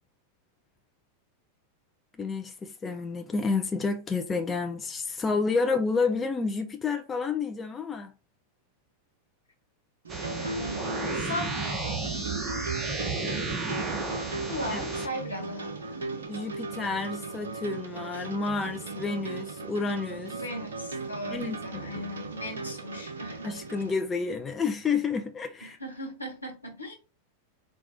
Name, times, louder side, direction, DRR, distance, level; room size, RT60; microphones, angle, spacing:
voice 1, 2.2-8.1 14.7-14.8 16.3-20.4 21.3-21.9 23.4-25.8, left 4 dB, 20° left, 0.5 m, -30 dB
sound 1, 10.0-23.9, right 3 dB, 70° right, 0.5 m, -37 dB
sound 2, 10.1-15.1, right 3 dB, 20° right, 0.8 m, -33 dB
voice 2, 10.4-11.5 14.5-16.2 18.1-18.3 20.3-23.5 25.6-26.9, equal, 85° left, 1.2 m, -38 dB
4.2 x 2.3 x 4.1 m
figure-of-eight pair, 90°, 0 cm